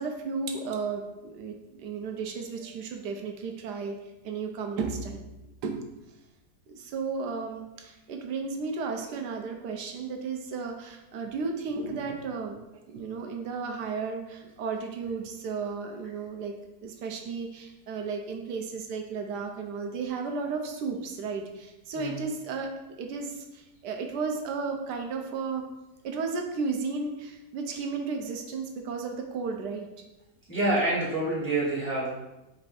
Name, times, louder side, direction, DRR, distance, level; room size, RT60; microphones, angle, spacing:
voice 1, 0.0-4.0 4.2-5.3 5.6-5.9 6.7-12.6 12.9-16.5 16.8-22.7 23.0-25.6 26.0-29.9, right 4 dB, 80° right, 3 dB, 1.1 m, -34 dB
voice 2, 30.5-32.1, right 2 dB, 10° left, -9 dB, 0.9 m, -27 dB
4.2 x 2.5 x 4.7 m, 0.99 s
omnidirectional pair, 1.8 m